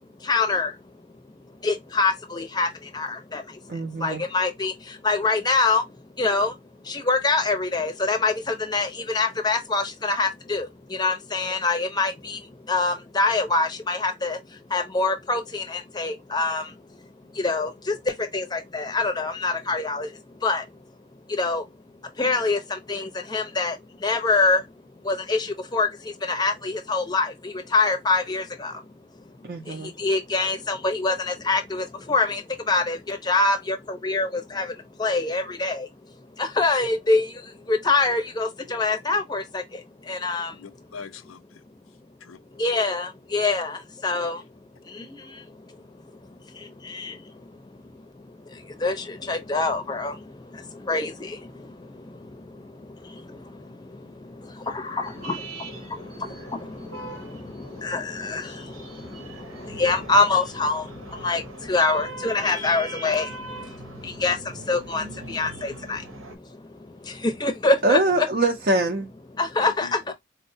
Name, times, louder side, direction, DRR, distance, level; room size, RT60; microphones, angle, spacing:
voice 1, 0.3-0.7 1.6-2.7 2.9-3.4 4.0-4.7 5.0-5.8 6.2-6.5 6.9-10.7 11.0-12.4 12.7-14.4 14.7-16.6 17.4-18.0 18.3-20.1 20.4-20.6 21.4-21.6 22.2-22.6 22.9-23.8 24.0-24.6 25.1-25.5 25.7-25.9 26.2-27.3 27.7-28.7 30.0-32.4 32.7-34.3 34.5-34.7 35.0-35.9 36.4-37.3 37.7-39.6 40.1-40.5 42.6-43.8 44.0-44.4 46.9-47.1 48.8-48.9 49.3-50.1 50.9-51.4 54.7-55.4 57.8-58.5 59.8-60.8 61.2-61.4 61.7-63.3 64.0-64.4 64.7-66.0 67.4-68.3 69.4-70.1, left 3 dB, 20° left, 0.6 m, -24 dB
voice 2, 3.7-4.2 29.4-29.9 67.8-69.1, right 2 dB, 45° right, 0.5 m, -23 dB
voice 3, 40.5-41.6 42.2-42.4 69.6-70.1, left 5 dB, 85° left, 0.5 m, -42 dB
sound 1, 55.0-66.4, right 2 dB, 85° right, 0.9 m, -41 dB
4.3 x 2.1 x 2.6 m
head